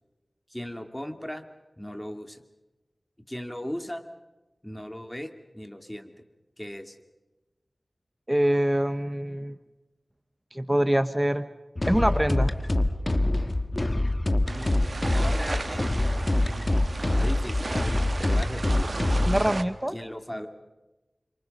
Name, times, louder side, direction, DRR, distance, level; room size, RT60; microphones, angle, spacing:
voice 1, 0.5-1.4 1.8-2.4 3.3-4.0 4.6-6.1 6.6-7.0 14.5-16.1 17.1-18.9 19.9-20.5, equal, 10° left, 7 dB, 2.4 m, -37 dB
voice 2, 8.3-9.5 10.5-11.4 11.9-12.5 19.2-19.9, right 1 dB, 15° right, 12 dB, 0.9 m, -24 dB
sound 1, 11.8-19.5, left 1 dB, 35° left, 1.6 m, -25 dB
sound 2, 14.5-19.6, right 3 dB, 65° right, 1.3 m, -35 dB
29.0 x 26.0 x 5.4 m, 1.1 s
wide cardioid pair, 45°, 0 cm